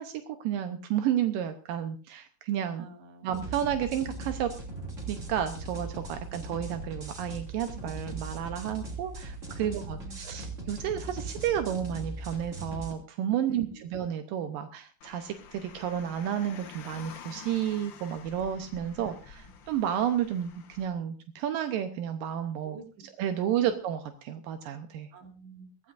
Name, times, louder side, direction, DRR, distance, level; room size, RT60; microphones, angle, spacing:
voice 1, 0.0-2.9 3.2-4.5 5.1-22.8 23.2-25.1, right 10 dB, 80° right, 8 dB, 2.5 m, -31 dB
voice 2, 2.8-3.3 9.6-10.2 13.5-13.9 18.9-19.1 22.6-23.1 23.5-23.7 25.1-25.9, right 3 dB, 50° right, 5 dB, 2.9 m, -49 dB
sound 1, 3.3-12.9, right 2 dB, 25° right, 2.7 m, -39 dB
Car, 15.0-20.9, left 6 dB, 85° left, 1.0 m, -49 dB
23.0 x 15.0 x 2.5 m, 0.35 s
omnidirectional pair, 4.0 m